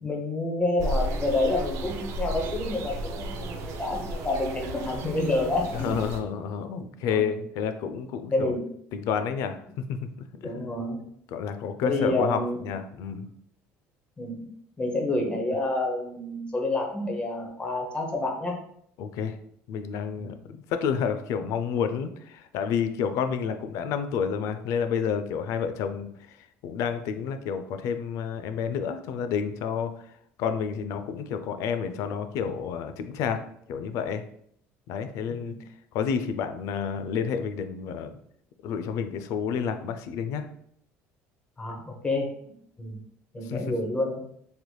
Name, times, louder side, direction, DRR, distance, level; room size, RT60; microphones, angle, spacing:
voice 1, 0.0-5.9 7.1-7.3 8.3-8.6 10.4-11.0 11.8-12.6 14.2-14.5 14.8-18.5 20.2-20.3 35.3-35.6 41.6-43.0 43.3-44.2, left 2 dB, 20° left, 0 dB, 0.7 m, -28 dB
sound 1, 0.8-6.2, right 1 dB, 60° right, 0.4 m, -33 dB
voice 2, 5.7-8.5 8.9-10.3 10.6-10.7 11.3-13.3 19.0-19.4 19.7-30.1 30.4-33.4 33.7-34.2 34.9-35.5 35.9-38.1 38.6-40.5 43.4-43.7, left 7 dB, 70° left, 9 dB, 0.3 m, -30 dB
3.2 x 3.0 x 2.2 m, 0.67 s
cardioid pair, 115°, 6 cm